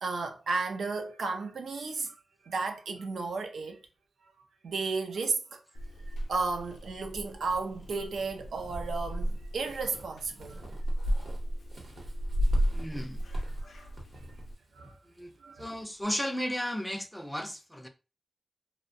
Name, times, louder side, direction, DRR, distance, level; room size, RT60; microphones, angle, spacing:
voice 1, 0.0-2.2 2.4-3.8 4.2-4.3 4.6-5.6 6.1-10.7 12.4-12.7 13.6-13.9 14.7-15.0 15.4-15.7, right 4 dB, 90° right, 0.4 m, -34 dB
Purr / Meow, 5.7-14.5, equal, 80° left, 0.4 m, -34 dB
Walk footsteps / Squeak, 6.5-16.0, right 2 dB, 50° right, 0.8 m, -51 dB
voice 2, 12.7-13.2 15.2-15.3 15.6-17.9, equal, 5° left, 0.3 m, -34 dB
2.5 x 2.0 x 2.6 m
wide cardioid pair, 105°, 0 cm